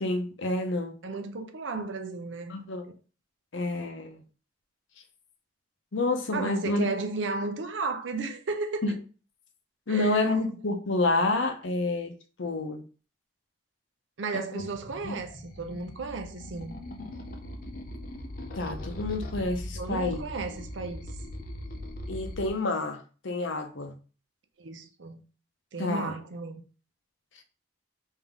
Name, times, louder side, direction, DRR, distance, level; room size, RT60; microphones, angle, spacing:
voice 1, 0.0-0.9 2.5-2.8 3.5-4.2 5.9-6.9 8.8-8.9 9.9-12.1 12.4-12.8 14.3-14.4 15.0-15.2 18.6-20.2 22.1-23.9 25.8-26.1, left 2 dB, 85° left, 0.7 m, -28 dB
voice 2, 1.0-2.6 6.3-8.9 9.9-10.4 14.2-16.8 19.7-21.1 24.6-25.2 25.7-26.6, right 3 dB, 80° right, 0.6 m, -34 dB
sound 1, 14.6-22.5, left 1 dB, 45° left, 0.5 m, -40 dB
3.5 x 2.7 x 3.5 m
head